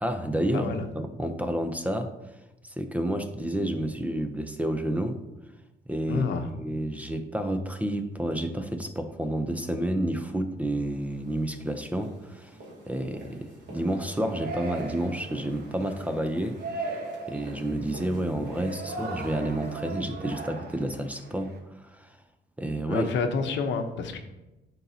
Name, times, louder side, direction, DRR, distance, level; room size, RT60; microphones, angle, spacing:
voice 1, 0.0-2.1 2.6-5.2 5.9-12.6 12.9-16.6 17.3-22.1 22.6-23.1, right 1 dB, 10° right, 7 dB, 0.5 m, -30 dB
voice 2, 0.5-0.8 6.1-6.4 22.9-24.2, left 5 dB, 80° left, 7 dB, 0.8 m, -28 dB
sound 1, 10.8-20.0, right 1 dB, 75° right, 2.2 m, -47 dB
Yell, 13.9-21.6, right 3 dB, 55° right, 1.1 m, -39 dB
11.5 x 4.1 x 2.7 m, 1.0 s
cardioid pair, 130°, 19 cm